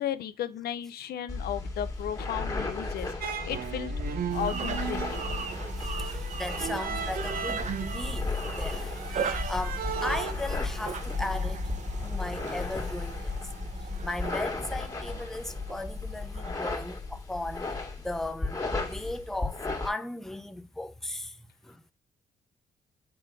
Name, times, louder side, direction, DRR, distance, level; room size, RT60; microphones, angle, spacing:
voice 1, 0.0-3.9 4.3-5.0, left 10 dB, 75° left, 0.6 m, -34 dB
sound 1, 1.3-19.9, left 3 dB, 20° left, 1.9 m, -34 dB
sound 2, 3.2-10.3, right 8 dB, 65° right, 0.6 m, -36 dB
sound 3, 4.3-16.7, right 6 dB, 45° right, 1.0 m, -39 dB
voice 2, 5.8-11.7 12.0-13.4 13.8-21.8, left 2 dB, ahead, 0.5 m, -37 dB
7.8 x 3.4 x 4.7 m
cardioid pair, 115°, 17 cm